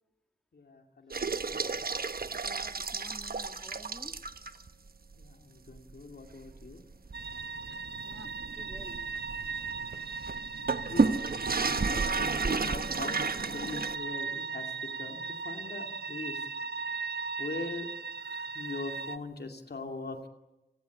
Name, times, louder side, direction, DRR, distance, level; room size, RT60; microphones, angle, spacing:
voice 1, 0.5-1.8 5.2-6.8 9.9-10.0 10.8-11.2 11.6-16.4 17.4-17.9 18.5-20.3, left 3 dB, 80° left, 5 dB, 2.6 m, -41 dB
sound 1, 1.1-4.7 5.1-5.2 5.7-5.8 6.3-14.0, right 4 dB, 65° right, 1.1 m, -32 dB
voice 2, 2.3-4.2 8.0-9.0, equal, 5° left, 6 dB, 2.0 m, -51 dB
sound 2, 7.1-19.2, right 5 dB, 90° right, 0.8 m, -37 dB
30.0 x 19.0 x 8.5 m, 1.0 s
wide cardioid pair, 90°, 17 cm